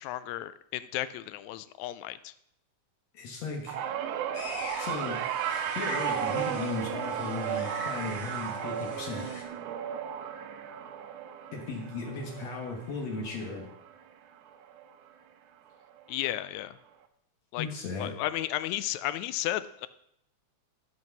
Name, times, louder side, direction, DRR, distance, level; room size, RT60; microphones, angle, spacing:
voice 1, 0.0-2.3 16.1-16.7 17.5-17.7 18.0-19.9, left 14 dB, 80° left, 15 dB, 1.7 m, -33 dB
voice 2, 3.1-3.8 4.8-9.3 11.5-13.7 17.6-18.1, left 3 dB, 65° left, 1 dB, 2.6 m, -36 dB
sound 1, 3.7-14.1 14.5-14.9 16.0-16.1, right 9 dB, 85° right, 2.3 m, -34 dB
sound 2, 4.3-9.4, left 3 dB, 45° left, 2.1 m, -44 dB
13.5 x 6.1 x 6.0 m, 0.77 s
omnidirectional pair, 3.5 m